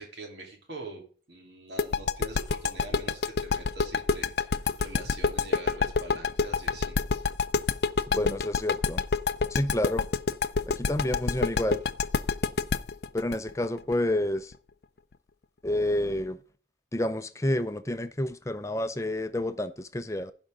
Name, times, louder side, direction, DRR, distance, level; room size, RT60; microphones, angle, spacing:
voice 1, 0.0-7.0, right 2 dB, 80° right, 3.4 m, -44 dB
sound 1, 1.8-14.5, left 5 dB, 65° left, 0.5 m, -27 dB
voice 2, 8.1-9.0 9.5-10.1 10.8-11.8 13.1-14.5 15.6-16.4 16.9-20.3, left 1 dB, 15° left, 0.5 m, -29 dB
16.0 x 5.4 x 3.7 m
head